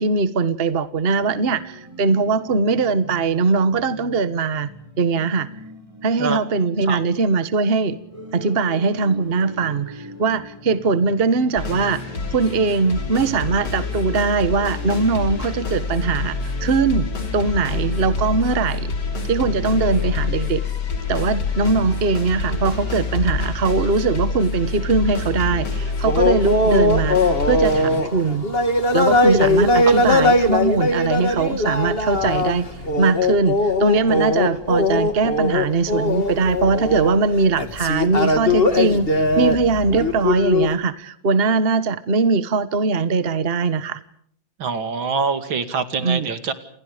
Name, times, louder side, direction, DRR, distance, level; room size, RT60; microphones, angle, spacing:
voice 1, 0.0-4.7 5.0-5.5 6.0-8.0 8.3-18.9 19.3-20.6 21.1-28.5 28.9-32.7 33.0-44.0 46.0-46.3, right 4 dB, 35° right, 14 dB, 1.4 m, -21 dB
sound 1, 1.2-20.2, left 1 dB, 15° right, 6.1 m, -40 dB
sound 2, 11.6-28.0, left 4 dB, 60° left, 3.9 m, -26 dB
sound 3, 26.0-40.7, left 2 dB, 30° left, 2.5 m, -20 dB
voice 2, 44.6-46.5, right 5 dB, 85° right, 10 dB, 3.1 m, -24 dB
30.0 x 28.5 x 5.1 m, 0.65 s
omnidirectional pair, 2.1 m